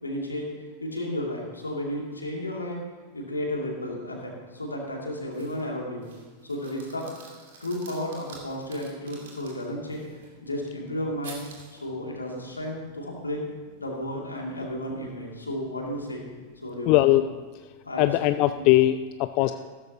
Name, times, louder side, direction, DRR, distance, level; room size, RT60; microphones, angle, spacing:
voice 1, 0.0-0.5 0.8-2.8 3.1-6.1 6.4-7.1 7.6-11.4 11.7-13.5 13.8-16.2 16.6-17.2 17.8-18.1 18.5-18.7 19.4-19.5, left 1 dB, 80° left, -1 dB, 2.5 m, -33 dB
sound 1, 5.3-5.7 6.0-10.3 11.2-11.8, right 4 dB, 60° right, 2.6 m, -48 dB
voice 2, 16.9-17.2 18.0-19.5, left 16 dB, 45° left, 11 dB, 0.3 m, -20 dB
15.5 x 13.0 x 2.9 m, 1.5 s
figure-of-eight pair, 90°, 0 cm